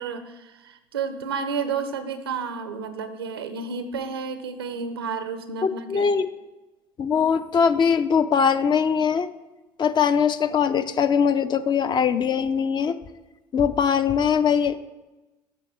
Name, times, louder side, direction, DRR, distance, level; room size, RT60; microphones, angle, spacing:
voice 1, 0.0-6.1, right 5 dB, 90° right, 10 dB, 0.6 m, -31 dB
voice 2, 5.6-6.3 7.0-9.3 9.8-13.0 13.5-14.8, left 7 dB, 35° left, 12 dB, 0.5 m, -21 dB
8.1 x 5.9 x 4.3 m, 1.1 s
hypercardioid pair, 60°, 12 cm